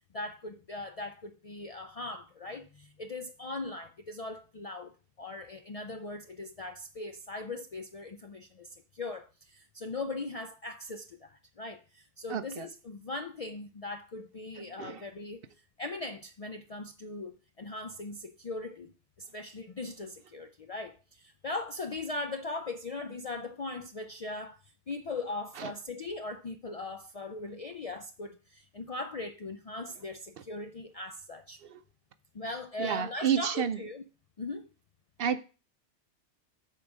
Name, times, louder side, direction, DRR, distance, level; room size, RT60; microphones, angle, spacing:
voice 1, 0.1-4.9 5.2-15.4 15.8-18.9 19.2-24.6 24.9-31.6 32.3-34.0 34.4-34.7, left 2 dB, 55° left, 0.4 m, -39 dB
voice 2, 12.3-12.7 14.8-15.0 25.6-25.7 31.7-31.8 32.8-33.8 35.2-35.4, right 8 dB, 60° right, 0.7 m, -30 dB
8.2 x 4.7 x 5.2 m
omnidirectional pair, 1.2 m